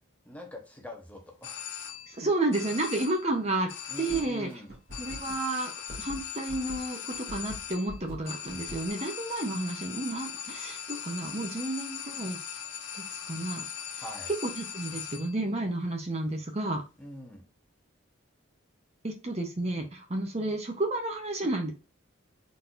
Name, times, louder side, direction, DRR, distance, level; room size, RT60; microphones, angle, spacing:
voice 1, 0.2-1.6 3.9-4.7 14.0-14.3 17.0-17.4, equal, 5° left, 0 dB, 0.9 m, -43 dB
sound 1, 1.4-2.2 2.5-3.3 3.7-4.5 4.9-15.4, left 8 dB, 65° left, 0.6 m, -40 dB
voice 2, 2.1-3.7 4.0-4.5 5.0-5.7 6.0-12.4 12.9-13.7 14.4-16.8 19.0-21.7, right 2 dB, 30° right, 3 dB, 0.8 m, -31 dB
sound 2, 3.5-3.7 4.1-8.9, left 1 dB, 50° right, 1.9 m, -43 dB
4.2 x 4.0 x 2.5 m, 0.30 s
head